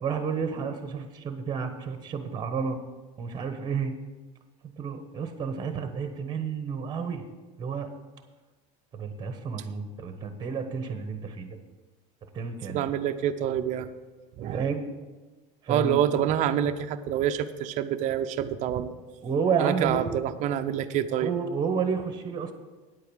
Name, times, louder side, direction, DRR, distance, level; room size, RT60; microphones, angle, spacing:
voice 1, 0.0-2.8 3.2-4.0 4.8-7.2 7.6-7.9 8.9-11.5 12.3-12.9 14.5-14.9 15.6-16.0 19.2-20.1 21.2-22.5, right 6 dB, 20° right, 8 dB, 1.0 m, -30 dB
voice 2, 12.7-13.9 14.4-14.7 15.7-18.9 19.6-21.3, right 10 dB, 40° right, 8 dB, 0.6 m, -27 dB
9.5 x 8.5 x 6.3 m, 1.2 s
cardioid pair, 155°, 19 cm